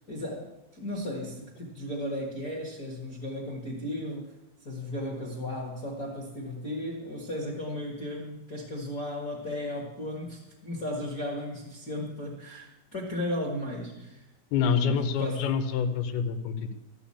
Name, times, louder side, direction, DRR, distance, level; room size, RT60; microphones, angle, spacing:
voice 1, 0.1-4.3 4.6-14.2 14.6-15.5, left 1 dB, 40° left, -3 dB, 1.3 m, -35 dB
voice 2, 14.5-16.7, left 6 dB, 90° left, 7 dB, 2.9 m, -27 dB
13.0 x 6.1 x 8.5 m, 0.94 s
omnidirectional pair, 4.3 m